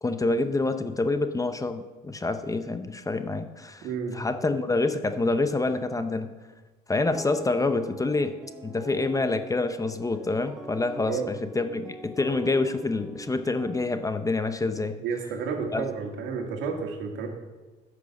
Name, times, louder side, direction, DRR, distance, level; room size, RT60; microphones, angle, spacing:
voice 1, 0.0-3.9 4.1-6.3 6.9-8.4 8.6-15.0 15.7-15.9, left 3 dB, 15° left, 9 dB, 0.7 m, -27 dB
voice 2, 3.8-4.2 11.1-11.3 15.0-17.3, right 5 dB, 75° right, 3 dB, 2.0 m, -31 dB
sound 1, 7.1-14.0, right 1 dB, ahead, 1.3 m, -44 dB
10.0 x 6.2 x 7.1 m, 1.3 s
cardioid pair, 95°, 20 cm